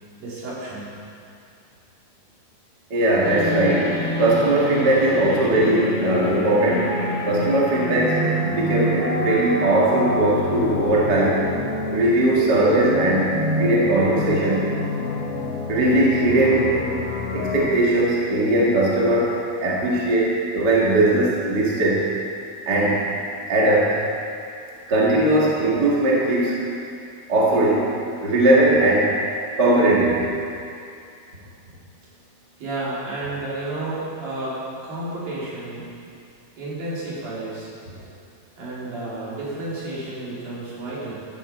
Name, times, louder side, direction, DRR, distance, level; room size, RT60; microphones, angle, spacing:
voice 1, 0.2-0.9 32.6-34.6 34.8-35.9 36.6-37.7 38.6-41.1, right 2 dB, 70° right, -8 dB, 5.0 m, -31 dB
voice 2, 2.9-3.9 4.2-6.9 7.3-11.4 11.9-14.7 15.7-16.7 17.3-19.3 19.6-22.0 22.7-23.0 23.5-24.0 24.9-26.6 27.3-27.9 28.2-29.1 29.6-30.3, right 2 dB, 35° right, -5 dB, 2.2 m, -19 dB
sound 1, 3.2-17.7, left 1 dB, 50° left, 2.1 m, -27 dB
15.0 x 12.5 x 4.5 m, 2.5 s
omnidirectional pair, 4.3 m